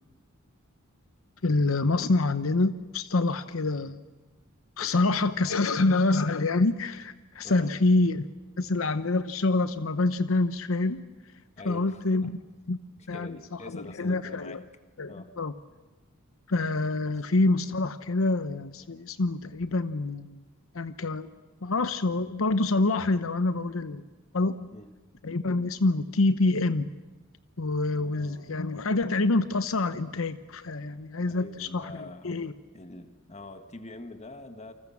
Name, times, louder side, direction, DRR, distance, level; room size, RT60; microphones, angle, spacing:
voice 1, 1.4-4.0 4.8-8.3 8.6-11.0 11.6-12.3 12.7-12.8 13.1-14.6 15.0-15.5 16.5-20.4 20.7-21.3 21.6-24.0 24.3-24.6 25.2-26.9 27.6-32.5, left 2 dB, 75° left, 12 dB, 0.9 m, -26 dB
voice 2, 4.8-5.6 7.4-7.7 11.6-12.3 13.0-14.6 15.1-15.3 24.7-24.9 27.9-28.5 31.2-32.4 32.7-34.7, left 2 dB, 35° left, 8 dB, 1.7 m, -45 dB
29.0 x 25.5 x 7.3 m, 1.2 s
head